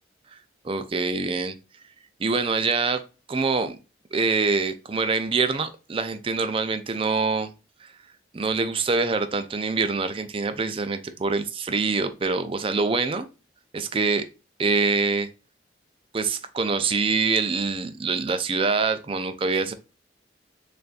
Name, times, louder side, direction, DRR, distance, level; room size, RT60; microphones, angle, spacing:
voice 1, 0.6-1.5 2.2-3.0 3.3-3.8 4.1-7.5 7.8-7.9 8.3-13.3 13.7-14.2 14.6-15.3 16.1-19.7, right 4 dB, 30° right, 10 dB, 0.4 m, -25 dB
6.7 x 2.5 x 2.4 m, 0.32 s
head